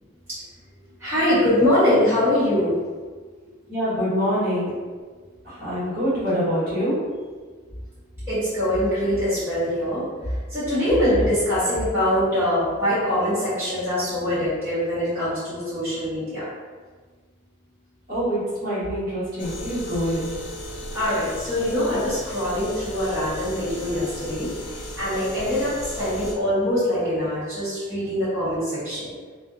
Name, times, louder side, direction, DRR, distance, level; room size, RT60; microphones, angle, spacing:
voice 1, 1.0-2.8 8.3-16.5 20.9-29.1, left 1 dB, 10° right, -14 dB, 0.9 m, -23 dB
voice 2, 3.7-4.7 5.4-7.0 18.1-20.2, equal, 45° right, -11 dB, 1.2 m, -25 dB
sound 1, 19.4-26.3, equal, 55° left, 0.4 m, -36 dB
2.5 x 2.4 x 2.4 m, 1.5 s
head